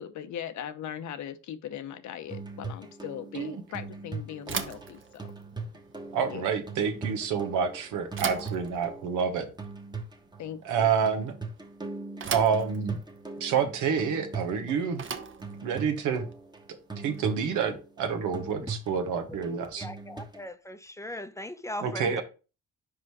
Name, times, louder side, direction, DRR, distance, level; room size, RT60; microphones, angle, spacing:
voice 1, 0.0-5.3 6.3-6.5 10.4-11.1, left 9 dB, 70° left, 0.8 m, -39 dB
sound 1, 2.3-20.5, right 3 dB, 15° right, 1.1 m, -40 dB
Bicycle / Thump thud, 4.4-17.5, right 6 dB, 40° right, 0.9 m, -41 dB
voice 2, 6.1-9.5 10.6-11.3 12.3-13.0 13.4-15.1 15.6-16.3 17.0-19.9 21.8-22.2, right 6 dB, 85° right, 1.3 m, -28 dB
voice 3, 19.8-22.2, left 1 dB, 10° left, 0.6 m, -39 dB
5.1 x 4.8 x 4.7 m
cardioid pair, 90°, 30 cm